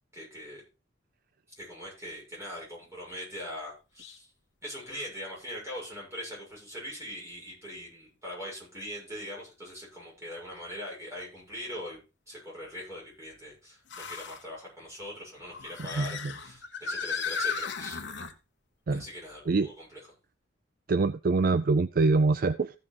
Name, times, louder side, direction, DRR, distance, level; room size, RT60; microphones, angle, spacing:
voice 1, 0.1-0.6 1.6-4.3 4.6-12.0 12.3-18.0 18.9-20.0, equal, 15° right, -4 dB, 6.9 m, -41 dB
sound 1, 4.0-4.2 4.8-4.9 7.0-7.1 10.6-10.7 13.9-14.4 15.4-18.3, left 5 dB, 70° left, 1.2 m, -35 dB
voice 2, 20.9-22.7, right 3 dB, 50° right, 13 dB, 0.4 m, -24 dB
15.0 x 6.2 x 4.2 m, 0.30 s
head